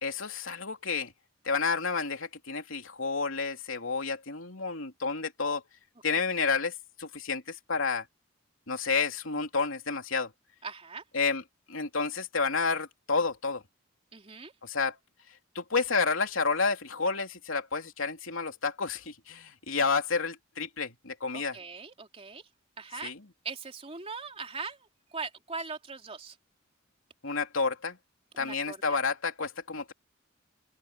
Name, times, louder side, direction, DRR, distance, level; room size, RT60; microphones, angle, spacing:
voice 1, 0.0-1.1 1.4-5.6 6.0-8.1 8.7-10.3 11.1-11.4 11.7-13.6 14.6-15.0 15.5-21.6 23.0-23.2 27.2-28.0 28.4-29.9, left 4 dB, 80° left, 3.2 m, -30 dB
voice 2, 10.6-11.0 14.1-14.5 21.3-22.4 22.8-23.1 23.4-26.3 28.3-28.8, right 4 dB, 30° right, 3.2 m, -40 dB
open air
head